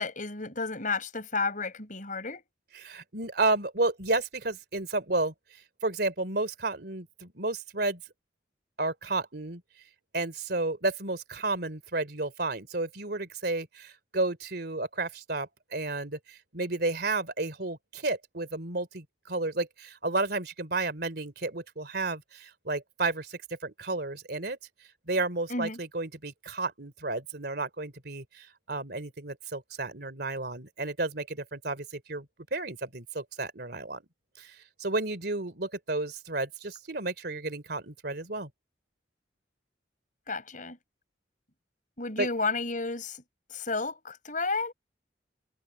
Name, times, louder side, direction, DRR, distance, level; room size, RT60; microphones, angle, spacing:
voice 1, 0.0-2.4 25.5-25.8 40.3-40.8 42.0-43.2 43.5-44.7, left 3 dB, 45° left, 6.1 m, -32 dB
voice 2, 2.7-5.3 5.8-8.0 8.8-9.6 10.1-24.6 25.1-34.0 34.4-38.5 42.2-42.3, right 2 dB, 60° right, 3.3 m, -32 dB
head